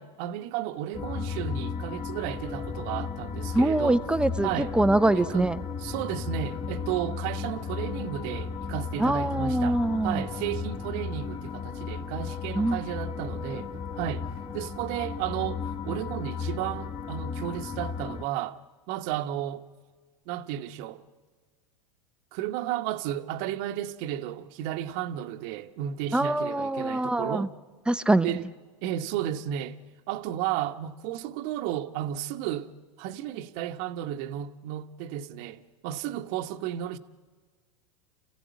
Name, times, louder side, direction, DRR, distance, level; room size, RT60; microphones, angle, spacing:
voice 1, 0.0-4.0 4.4-4.7 5.1-5.5 5.8-14.3 14.5-18.6 18.9-19.6 20.3-21.0 22.3-27.5 28.2-28.4 28.8-29.8 30.1-32.7 33.0-37.0, right 11 dB, 55° right, 1.2 m, -33 dB
sound 1, 0.9-18.3, left 5 dB, 30° left, 1.9 m, -35 dB
voice 2, 3.5-5.6 9.0-10.3 12.6-12.8 26.1-27.5 27.9-28.3, right 1 dB, 5° right, 0.7 m, -24 dB
28.5 x 15.5 x 9.5 m
hypercardioid pair, 105°, 17 cm